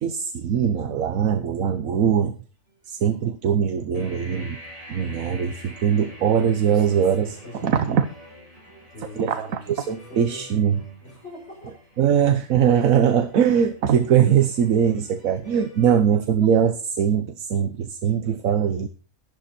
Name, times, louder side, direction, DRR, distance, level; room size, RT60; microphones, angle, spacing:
voice 1, 0.0-2.3 2.9-4.6 4.9-7.3 7.6-8.1 9.2-10.8 12.0-18.9, right 8 dB, 75° right, 9 dB, 1.3 m, -21 dB
sound 1, 1.2-2.1 2.4-15.9, equal, 45° right, 6.4 m, -53 dB
sound 2, 3.9-15.7, equal, 25° right, 5.3 m, -47 dB
voice 2, 5.9-8.0 8.9-11.8 13.1-13.2 13.5-13.6 15.4-15.5 16.4-16.5, left 1 dB, 45° left, -2 dB, 8.2 m, -41 dB
13.5 x 11.5 x 4.3 m, 0.36 s
omnidirectional pair, 1.5 m